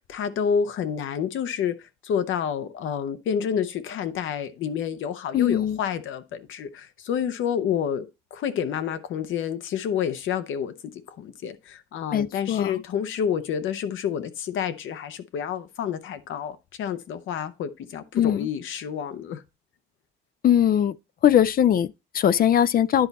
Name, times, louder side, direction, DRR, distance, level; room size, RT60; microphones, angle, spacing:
voice 1, 0.1-1.8 2.0-8.1 8.3-10.7 11.2-19.4, left 8 dB, 80° left, 0.8 m, -29 dB
voice 2, 5.3-5.8 12.1-12.8 18.1-18.5 20.4-21.0 21.2-23.1, left 10 dB, 50° left, 0.4 m, -21 dB
10.5 x 4.0 x 4.1 m
cardioid pair, 90°, 20 cm